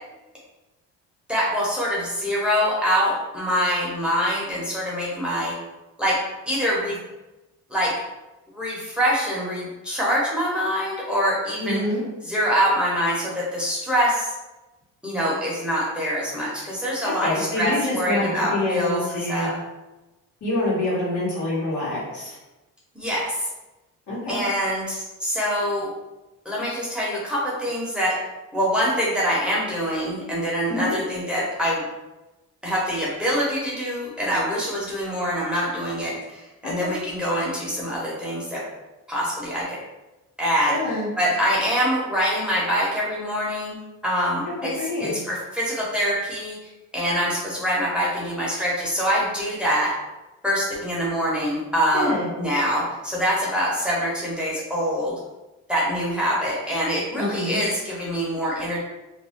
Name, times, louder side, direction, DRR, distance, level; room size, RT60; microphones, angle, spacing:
voice 1, 1.3-5.5 6.0-6.2 6.5-7.0 7.7-7.9 8.5-11.8 12.2-14.3 15.0-19.5 22.9-23.4 24.3-25.9 26.4-28.2 28.5-31.8 32.6-38.6 39.1-39.8 40.4-49.9 50.4-55.1 55.7-58.8, equal, 5° right, -6 dB, 1.0 m, -25 dB
voice 2, 11.6-12.0 17.0-19.5 20.4-22.4 24.1-24.4 30.7-31.0 36.6-36.9 40.7-41.1 44.5-45.1 51.9-52.3 57.2-57.6, left 1 dB, 60° left, -7 dB, 1.4 m, -26 dB
2.7 x 2.2 x 3.5 m, 1.1 s
cardioid pair, 85°, 33 cm